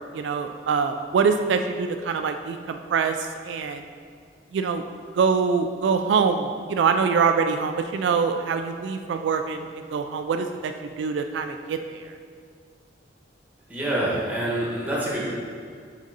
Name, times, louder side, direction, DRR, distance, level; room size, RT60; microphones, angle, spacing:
voice 1, 0.1-3.8 4.5-4.8 5.1-12.1, right 5 dB, 80° right, 7 dB, 0.3 m, -24 dB
voice 2, 13.7-15.2, right 1 dB, 10° right, -6 dB, 1.3 m, -26 dB
6.4 x 3.8 x 3.9 m, 2.1 s
head